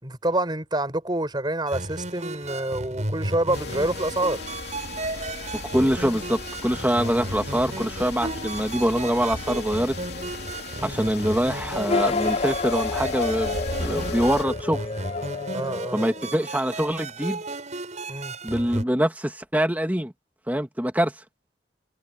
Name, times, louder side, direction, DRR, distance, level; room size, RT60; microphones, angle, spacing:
voice 1, 0.0-4.4 10.8-11.0 15.5-16.0 18.1-18.3, right 1 dB, 25° right, 5.3 m, -27 dB
sound 1, 1.7-18.8, right 2 dB, 40° right, 7.5 m, -34 dB
sound 2, 3.5-14.4, left 3 dB, 60° left, 2.9 m, -36 dB
voice 2, 5.7-9.9 10.8-14.8 15.9-17.4 18.4-20.1 20.5-21.1, equal, 10° right, 2.4 m, -24 dB
sound 3, 11.8-16.7, left 4 dB, 35° left, 0.4 m, -29 dB
head